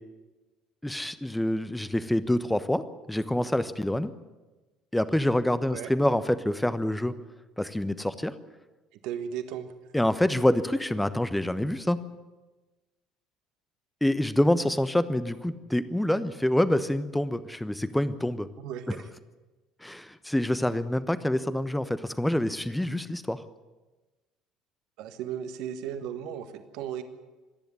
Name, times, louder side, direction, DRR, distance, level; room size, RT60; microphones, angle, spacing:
voice 1, 0.8-4.1 4.9-7.2 7.6-8.3 9.9-12.0 14.0-18.5 18.9-19.0 19.8-23.4, left 1 dB, 5° left, 14 dB, 1.1 m, -26 dB
voice 2, 9.0-9.7 18.6-19.1 25.0-27.0, right 9 dB, 55° right, 9 dB, 1.5 m, -35 dB
25.5 x 10.5 x 9.7 m, 1.2 s
figure-of-eight pair, 60°, 0 cm